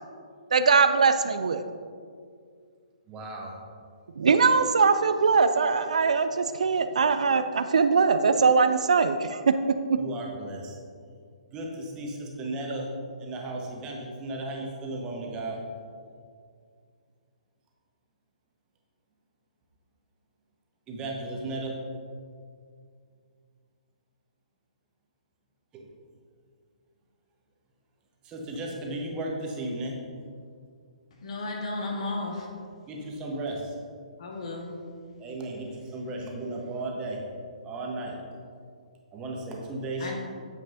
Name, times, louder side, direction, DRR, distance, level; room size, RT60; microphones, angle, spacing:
voice 1, 0.5-1.6 4.2-9.5 9.9-10.0, right 5 dB, 60° right, 10 dB, 0.4 m, -21 dB
voice 2, 3.1-3.5 10.0-10.8 11.5-12.9 13.2-15.6 20.9-21.8 25.7-25.9 28.2-30.0 32.9-33.7 35.2-37.2 37.6-38.2 39.1-40.2, right 2 dB, 20° right, -1 dB, 1.2 m, -35 dB
voice 3, 31.2-32.5 34.2-34.7 40.0-40.2, left 2 dB, 50° left, 0 dB, 1.6 m, -33 dB
9.3 x 7.3 x 2.7 m, 2.2 s
figure-of-eight pair, 130°, 4 cm